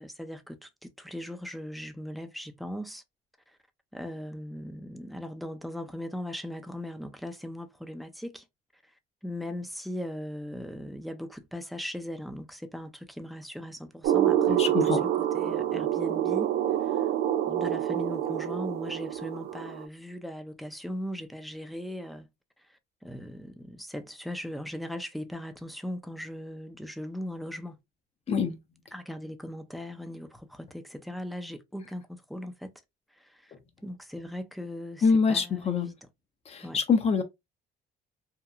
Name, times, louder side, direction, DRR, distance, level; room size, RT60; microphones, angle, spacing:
voice 1, 0.0-3.0 3.5-3.6 3.9-8.4 9.2-16.5 16.8-17.1 17.5-22.3 22.7-27.8 28.9-32.7 33.1-33.5 33.8-35.9 36.6-36.8, left 1 dB, ahead, 0.4 m, -39 dB
sound 1, 14.0-19.8, right 11 dB, 70° right, 0.5 m, -27 dB
voice 2, 14.5-15.0 28.3-28.6 35.0-35.9 36.5-37.2, left 5 dB, 40° left, 0.6 m, -25 dB
2.9 x 2.2 x 2.4 m
cardioid pair, 110°, 17 cm